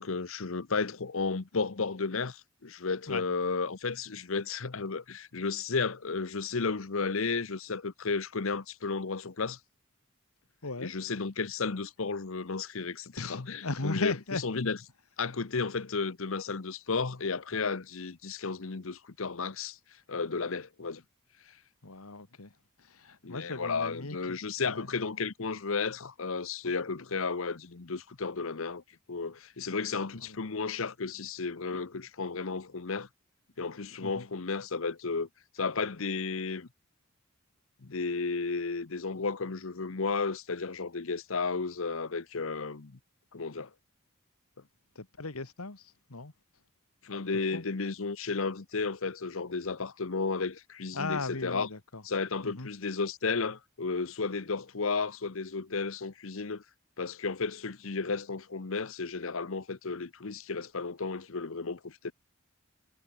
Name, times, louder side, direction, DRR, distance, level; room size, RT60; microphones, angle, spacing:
voice 1, 0.0-9.6 10.8-14.1 14.4-14.8 15.2-19.8 20.1-21.0 23.2-28.8 29.1-33.1 33.6-35.3 35.5-36.7 37.8-43.0 43.3-43.7 47.0-51.7 52.0-56.6 57.0-62.1, left 4 dB, 70° left, 0.9 m, -33 dB
voice 2, 10.6-10.9 13.2-14.4 21.8-24.4 24.6-24.9 30.3-30.4 34.0-34.3 45.0-46.3 47.5-47.6 50.9-52.0 52.4-52.7, left 3 dB, 90° left, 2.0 m, -37 dB
head